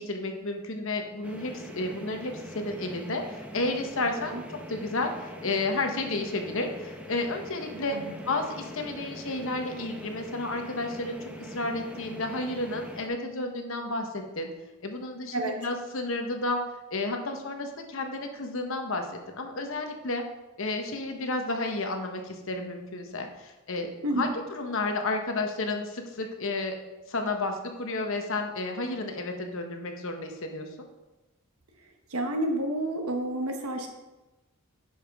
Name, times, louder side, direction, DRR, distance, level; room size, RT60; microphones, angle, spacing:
voice 1, 0.0-4.4 4.7-8.0 8.3-14.5 14.8-16.6 16.9-20.2 20.6-23.9 24.1-26.8 27.1-30.7, left 2 dB, 65° left, 4 dB, 1.1 m, -32 dB
sound 1, 1.2-13.1, equal, 5° right, 0.7 m, -43 dB
voice 2, 24.0-24.4 31.8-33.9, right 1 dB, 85° right, 4 dB, 1.1 m, -30 dB
9.9 x 5.7 x 3.6 m, 1.1 s
head